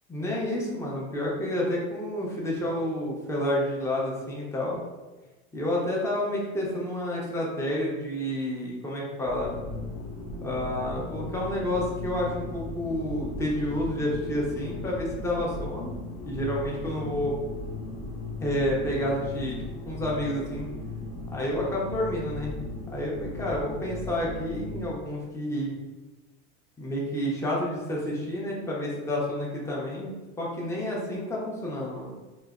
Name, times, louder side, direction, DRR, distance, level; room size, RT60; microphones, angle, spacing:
voice 1, 0.1-4.8 5.5-9.5 10.4-16.0 16.3-17.3 18.4-19.6 19.8-20.7 21.3-22.6 22.9-25.7 26.8-32.1, left 1 dB, 10° left, -4 dB, 0.7 m, -29 dB
sound 1, 9.2-24.9, left 2 dB, 75° left, 0.9 m, -37 dB
3.1 x 3.0 x 2.4 m, 1.2 s
supercardioid pair, 115°, 34 cm